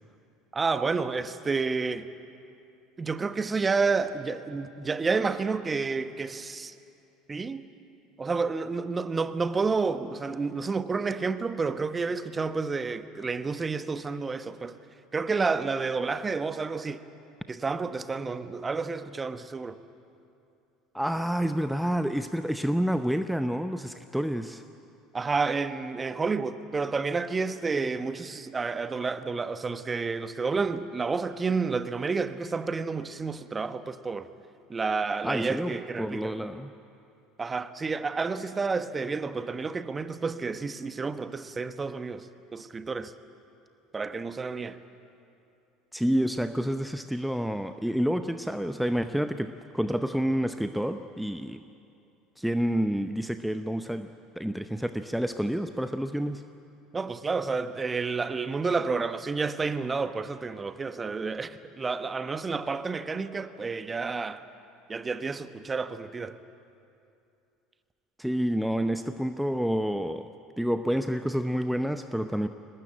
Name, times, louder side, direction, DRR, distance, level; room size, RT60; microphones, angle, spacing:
voice 1, 0.5-2.0 3.0-6.7 7.3-7.7 8.2-14.7 15.1-17.0 17.5-19.8 25.1-34.3 34.7-36.3 37.4-42.3 42.5-43.1 43.9-44.8 56.9-64.4 64.9-66.4, right 4 dB, 25° right, 12 dB, 1.1 m, -30 dB
voice 2, 20.9-24.6 35.2-36.7 45.9-51.6 52.4-56.4 68.2-70.3 70.6-72.5, equal, ahead, 9 dB, 0.7 m, -29 dB
22.5 x 19.5 x 9.0 m, 2.6 s
figure-of-eight pair, 65°, 0 cm